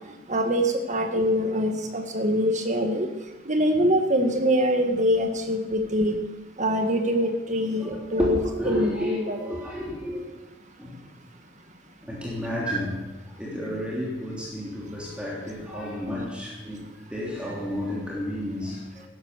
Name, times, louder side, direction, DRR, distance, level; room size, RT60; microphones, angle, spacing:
voice 1, 0.3-3.1 3.5-6.2 6.6-8.4 8.7-9.4 12.7-12.8, equal, 40° right, 5 dB, 1.9 m, -24 dB
voice 2, 7.8-10.3 10.8-11.0 12.0-13.0 13.3-16.8 17.1-19.0, left 1 dB, 5° right, -5 dB, 3.1 m, -31 dB
14.0 x 11.0 x 6.8 m, 1.1 s
head